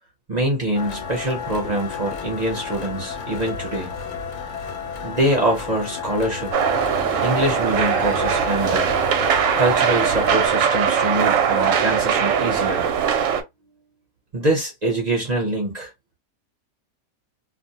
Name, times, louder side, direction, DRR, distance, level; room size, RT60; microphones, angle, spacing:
voice 1, 0.3-3.9 5.0-6.5 7.2-8.9 9.6-12.9 14.3-15.9, right 1 dB, 45° right, 0.6 m, -24 dB
sound 1, 0.7-10.5, left 6 dB, 65° left, 0.8 m, -32 dB
sound 2, 6.5-13.4, right 7 dB, 70° right, 0.8 m, -20 dB
2.5 x 2.0 x 2.7 m
omnidirectional pair, 1.6 m